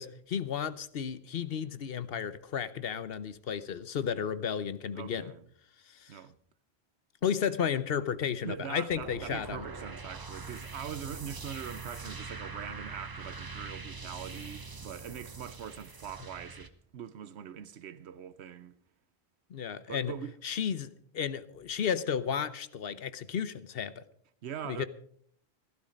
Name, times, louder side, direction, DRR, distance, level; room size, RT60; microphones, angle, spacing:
voice 1, 0.0-5.3 5.9-6.2 7.2-9.6 19.5-20.1 20.4-24.0 24.6-24.9, left 7 dB, 65° left, 1.0 m, -33 dB
voice 2, 4.9-5.5 6.1-6.4 8.4-18.7 19.9-20.3 20.7-20.8 24.4-24.9, right 8 dB, 85° right, 1.0 m, -42 dB
sound 1, 8.9-16.7, right 4 dB, 25° right, 0.8 m, -43 dB
15.0 x 12.0 x 5.2 m
omnidirectional pair, 1.1 m